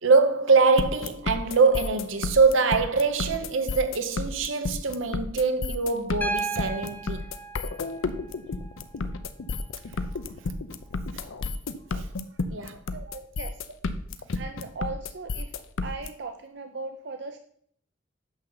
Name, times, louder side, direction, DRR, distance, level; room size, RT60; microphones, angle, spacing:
voice 1, 0.0-7.2 12.5-12.8, right 4 dB, 80° right, 0.8 m, -23 dB
sound 1, 0.8-16.1, left 3 dB, 85° left, 0.6 m, -31 dB
Piano, 6.2-10.2 11.8-11.9, right 2 dB, 10° left, 0.6 m, -36 dB
voice 2, 12.9-13.6 14.3-15.5 15.8-17.4, right 3 dB, 60° right, 0.5 m, -38 dB
8.9 x 6.7 x 4.0 m
head